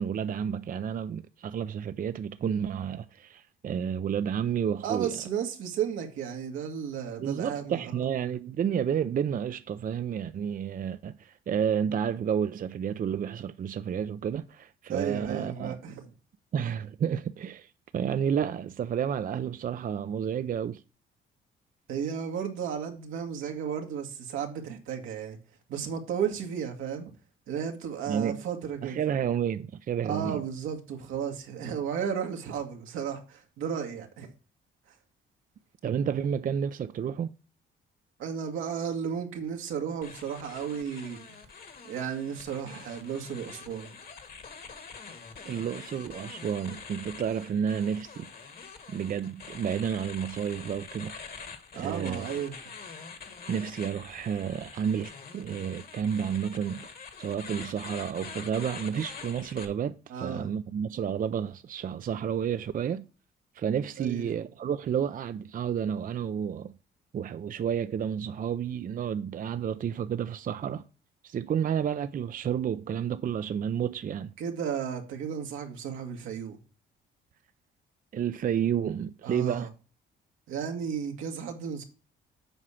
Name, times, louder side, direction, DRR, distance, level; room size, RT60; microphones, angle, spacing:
voice 1, 0.0-5.2 7.2-15.8 16.5-20.8 28.1-28.4 28.8-30.4 35.8-37.4 45.5-48.3 48.9-51.1 51.8-52.3 53.5-56.8 57.2-63.0 63.5-66.7 67.1-70.8 71.2-74.3 78.1-79.7, right 8 dB, 45° right, 0.5 m, -31 dB
voice 2, 4.8-8.0 14.9-16.1 21.9-25.4 25.7-27.1 27.5-29.0 30.0-34.3 38.2-41.4 41.9-43.9 45.4-45.6 51.7-52.5 60.1-60.5 64.0-64.3 74.4-76.6 79.2-79.7 80.5-81.8, right 7 dB, 90° right, 1.9 m, -34 dB
sound 1, 40.0-59.6, left 5 dB, 50° left, 1.7 m, -45 dB
7.9 x 4.9 x 5.7 m
cardioid pair, 90°, 20 cm